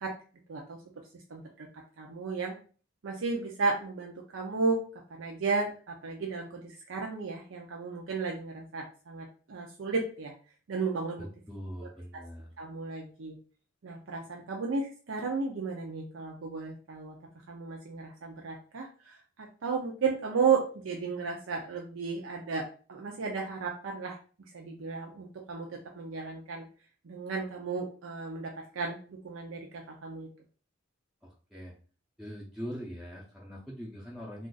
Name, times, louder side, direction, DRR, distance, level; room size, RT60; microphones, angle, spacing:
voice 1, 0.5-0.8 1.3-1.7 2.0-2.5 3.0-4.8 5.1-10.3 10.7-11.2 12.6-13.4 13.8-17.2 17.5-24.2 24.5-26.6 27.0-30.3, right 4 dB, 85° right, 0 dB, 0.5 m, -34 dB
voice 2, 11.2-12.5 31.2-31.7 32.2-34.5, equal, ahead, -5 dB, 0.5 m, -42 dB
2.4 x 2.4 x 3.8 m, 0.40 s
head